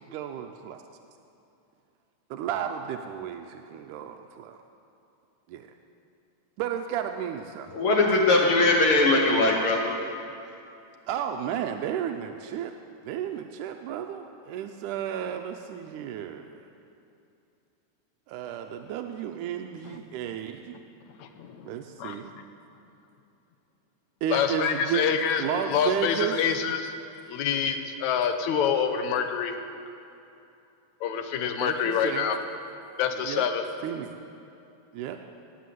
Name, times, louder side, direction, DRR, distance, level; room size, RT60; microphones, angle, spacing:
voice 1, 0.1-0.8 2.3-4.6 5.5-5.7 6.6-7.7 11.1-12.7 13.0-16.6 18.3-20.8 21.7-22.3 24.2-25.1 25.4-26.5 31.6-32.3 33.2-33.5 33.8-34.1 34.9-35.2, right 9 dB, 85° right, 5 dB, 2.1 m, -33 dB
voice 2, 7.7-10.0, left 2 dB, 55° left, 0 dB, 1.7 m, -21 dB
voice 3, 21.2-21.7 22.0-22.2 24.3-26.9 27.3-29.5 31.0-32.4 33.0-33.7, left 7 dB, 75° left, 7 dB, 2.2 m, -26 dB
19.0 x 7.7 x 7.9 m, 2.7 s
omnidirectional pair, 3.6 m